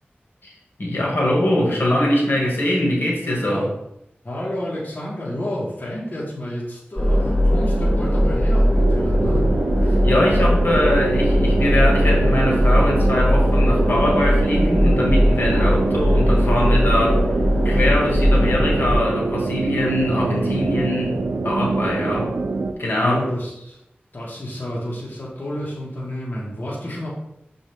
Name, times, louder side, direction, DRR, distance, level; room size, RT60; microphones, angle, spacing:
voice 1, 0.8-3.6 10.0-17.2 17.6-22.3 22.8-23.2, left 1 dB, 65° left, -3 dB, 1.9 m, -22 dB
voice 2, 4.2-9.6 9.8-9.9 23.0-23.8 24.1-27.1, equal, 45° left, -6 dB, 1.7 m, -30 dB
sound 1, 7.0-18.9, equal, 15° left, 2.5 m, -19 dB
sound 2, 8.8-22.7, right 3 dB, 85° right, 0.5 m, -25 dB
6.4 x 5.1 x 3.5 m, 0.81 s
wide cardioid pair, 70°, 4 cm